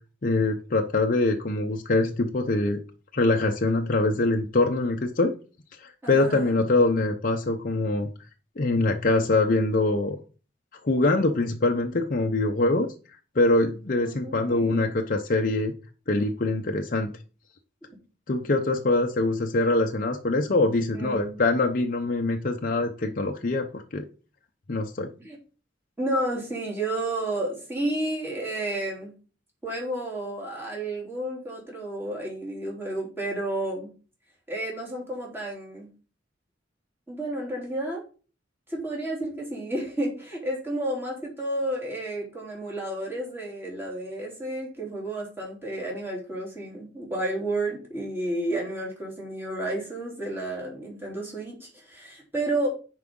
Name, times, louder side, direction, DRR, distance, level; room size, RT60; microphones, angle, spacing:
voice 1, 0.2-2.8 3.1-5.3 5.8-8.1 8.6-10.2 10.8-12.9 13.3-15.7 16.1-17.1 18.3-24.1 24.7-25.1, left 2 dB, 45° left, 3 dB, 0.7 m, -24 dB
voice 2, 6.0-6.5 14.0-14.8 20.9-21.4 25.2-25.4 26.0-29.1 29.6-33.9 34.5-35.9 37.1-38.0 38.7-52.7, right 1 dB, 10° right, -4 dB, 3.5 m, -31 dB
9.7 x 4.8 x 3.7 m, 0.37 s
head